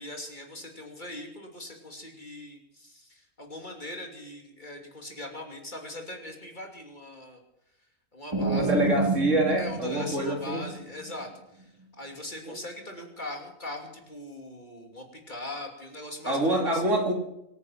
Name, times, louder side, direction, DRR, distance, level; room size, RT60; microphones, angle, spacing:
voice 1, 0.0-7.4 8.1-8.8 9.5-16.8, left 1 dB, 30° left, 2 dB, 3.0 m, -41 dB
sound 1, 8.3-11.1, right 2 dB, 20° right, 1.8 m, -29 dB
voice 2, 8.5-10.7 12.5-12.6 16.3-17.1, right 1 dB, 55° right, 1 dB, 3.5 m, -26 dB
24.5 x 10.0 x 5.9 m, 0.82 s
omnidirectional pair, 1.5 m